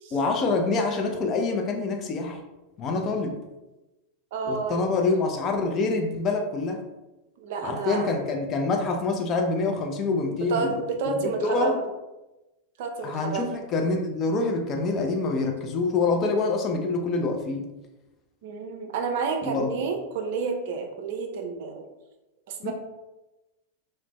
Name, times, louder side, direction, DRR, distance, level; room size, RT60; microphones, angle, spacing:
voice 1, 0.1-2.4 2.8-3.3 4.5-6.8 7.6-10.7 11.0-11.8 13.0-17.6 19.4-19.7 22.6-22.7, left 3 dB, 30° left, 3 dB, 0.4 m, -26 dB
voice 2, 4.3-5.1 7.4-8.1 10.5-11.8 12.8-13.6 18.4-21.9 22.5-22.7, right 4 dB, 50° right, 4 dB, 0.3 m, -30 dB
2.4 x 2.1 x 3.0 m, 1.0 s
figure-of-eight pair, 90°, 0 cm